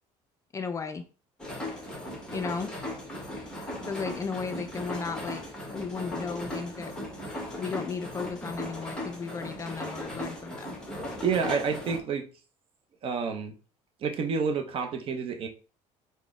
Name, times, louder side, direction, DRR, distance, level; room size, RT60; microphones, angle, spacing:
voice 1, 0.5-1.0 2.3-2.7 3.9-5.4 5.7-6.9 7.6-10.8, left 5 dB, 25° left, 7 dB, 0.4 m, -35 dB
sound 1, 1.4-12.0, left 1 dB, 5° left, 1.1 m, -37 dB
voice 2, 11.2-12.2 13.0-13.5 14.0-15.5, right 6 dB, 45° right, 5 dB, 0.7 m, -29 dB
4.0 x 2.1 x 3.6 m, 0.36 s
cardioid pair, 135°, 13 cm